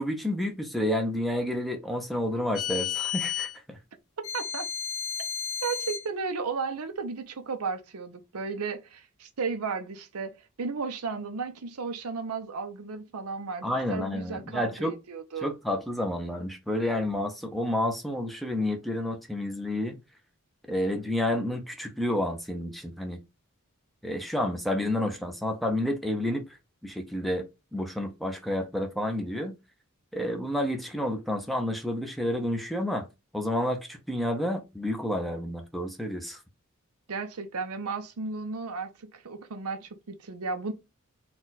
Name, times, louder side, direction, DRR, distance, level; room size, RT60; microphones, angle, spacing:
voice 1, 0.0-3.8 13.6-14.9 15.4-20.0 20.7-23.2 24.0-26.4 26.8-27.4 27.7-29.6 30.1-33.1 33.3-36.4, left 1 dB, ahead, 0.6 m, -30 dB
sound 1, 2.5-3.5 4.2-6.1, left 9 dB, 70° left, 1.2 m, -32 dB
voice 2, 4.2-4.7 5.6-15.5 37.1-40.7, right 4 dB, 85° right, 0.7 m, -34 dB
4.2 x 2.4 x 3.9 m
head